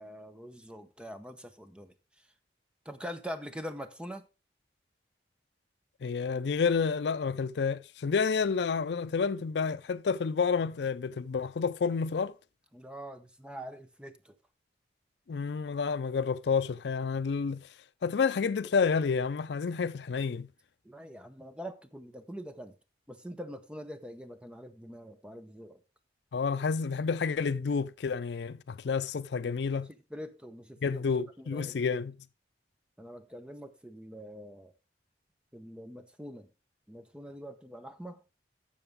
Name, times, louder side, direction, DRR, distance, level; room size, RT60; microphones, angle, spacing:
voice 1, 0.0-1.9 2.8-4.2 12.7-14.3 20.8-22.7 23.1-25.8 29.4-29.8 30.1-31.0 31.4-32.0 33.0-34.7 35.5-36.5 36.9-38.2, equal, 5° right, 0.8 m, -44 dB
voice 2, 6.0-12.3 15.3-17.7 18.0-20.5 26.3-29.9 30.8-32.1, left 5 dB, 75° left, 0.4 m, -29 dB
12.5 x 7.0 x 3.6 m
head